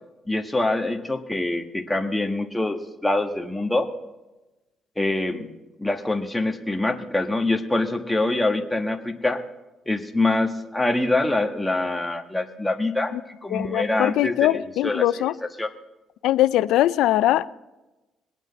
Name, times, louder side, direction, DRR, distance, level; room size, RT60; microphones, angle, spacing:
voice 1, 0.3-3.9 5.0-5.5 5.8-9.4 9.9-15.0 15.6-15.7, left 2 dB, 10° left, 3 dB, 1.3 m, -25 dB
voice 2, 13.5-15.3 16.2-17.5, left 14 dB, 90° left, 17 dB, 0.4 m, -21 dB
21.5 x 9.1 x 4.1 m, 1.1 s
cardioid pair, 90°, 0 cm